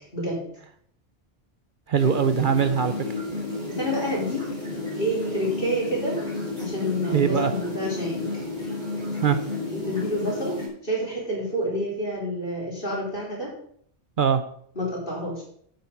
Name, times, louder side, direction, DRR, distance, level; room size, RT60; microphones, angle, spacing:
voice 1, 0.1-0.4 3.7-4.5 5.0-6.2 6.6-8.5 9.7-10.6 10.8-13.5 14.7-15.4, equal, 55° left, -4 dB, 4.5 m, -28 dB
voice 2, 1.9-3.2 7.1-7.5 9.2-9.4 14.2-14.4, right 7 dB, 55° right, 9 dB, 0.8 m, -21 dB
sound 1, 2.0-10.7, left 2 dB, 35° right, 4.3 m, -32 dB
9.3 x 7.9 x 5.6 m, 0.64 s
omnidirectional pair, 1.1 m